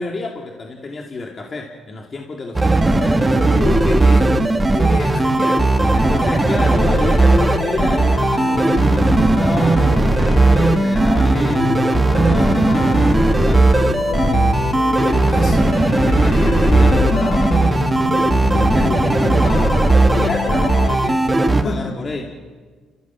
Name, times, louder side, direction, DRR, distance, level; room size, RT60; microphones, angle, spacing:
voice 1, 0.0-3.3 5.9-13.8 14.3-14.4 14.8-15.3 16.0-19.8 20.1-22.2, left 3 dB, 35° left, 1 dB, 2.5 m, -30 dB
sound 1, 2.6-21.6, right 2 dB, 15° right, 1.8 m, -16 dB
voice 2, 3.1-5.8 15.3-15.8 16.3-16.7 20.5-21.0 21.6-21.8, left 3 dB, 50° left, 7 dB, 3.4 m, -28 dB
sound 2, 4.8-21.0, left 9 dB, 65° left, 0.7 m, -27 dB
30.0 x 15.5 x 7.1 m, 1.5 s
cardioid pair, 85°, 0 cm